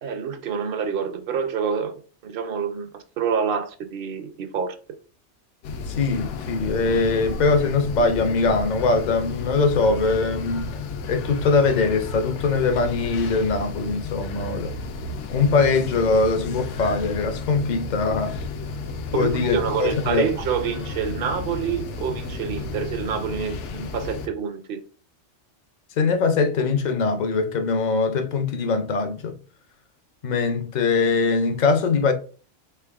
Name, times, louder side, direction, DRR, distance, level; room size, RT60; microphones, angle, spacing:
voice 1, 0.0-2.9 3.2-4.8 19.1-24.8, right 7 dB, 60° right, 0.6 m, -27 dB
sound 1, 5.6-24.3, left 3 dB, 75° left, 0.9 m, -32 dB
voice 2, 5.9-10.7 11.1-14.7 15.3-18.4 19.1-20.3 26.0-29.4 30.2-32.1, left 4 dB, 55° left, 0.5 m, -22 dB
3.7 x 3.4 x 2.3 m
omnidirectional pair, 1.2 m